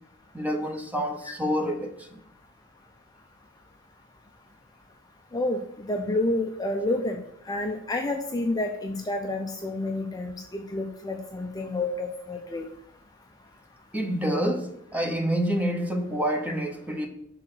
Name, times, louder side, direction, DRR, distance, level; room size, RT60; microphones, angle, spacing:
voice 1, 0.3-2.2 13.9-17.1, equal, 5° right, 0.8 m, -28 dB
voice 2, 5.3-7.2 7.5-12.7, left 2 dB, 20° left, 0.4 m, -29 dB
6.2 x 3.8 x 6.1 m
head